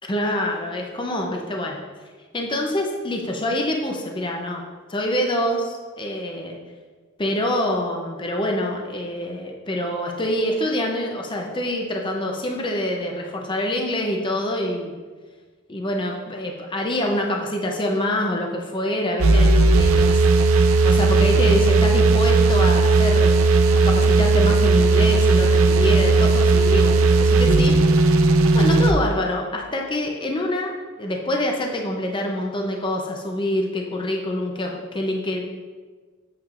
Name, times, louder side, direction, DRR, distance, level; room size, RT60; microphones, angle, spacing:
voice 1, 0.0-1.8 2.3-4.6 4.9-6.6 7.2-14.9 15.7-20.2 20.8-23.4 23.8-27.8 28.5-30.7 31.0-35.4, left 1 dB, 25° left, 1 dB, 0.7 m, -26 dB
sound 1, 19.2-28.9, right 3 dB, 85° right, 0.5 m, -16 dB
8.7 x 7.2 x 2.5 m, 1.5 s
head